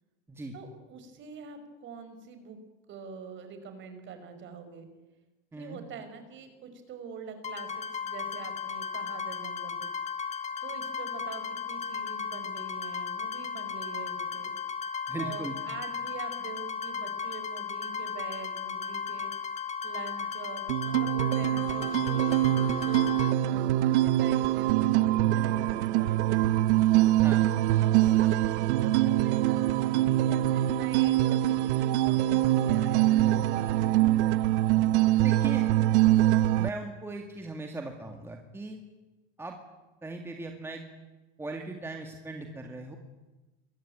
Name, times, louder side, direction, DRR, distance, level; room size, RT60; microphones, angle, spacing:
voice 1, 0.5-2.6 2.9-4.9 5.6-9.9 10.6-14.5 15.1-19.3 19.8-26.6 27.8-34.0 34.6-35.0, right 5 dB, 35° right, 8 dB, 5.3 m, -45 dB
sound 1, 7.4-23.3, left 6 dB, 20° left, 2.0 m, -35 dB
voice 2, 15.1-15.6 27.2-27.4 35.2-35.6 36.6-38.8 39.4-39.5 40.0-40.8 41.4-43.0, right 2 dB, 5° right, 3 dB, 2.1 m, -38 dB
sound 2, 20.7-36.7, right 14 dB, 80° right, 1.1 m, -24 dB
28.0 x 22.5 x 8.8 m, 1.1 s
supercardioid pair, 155°, 34 cm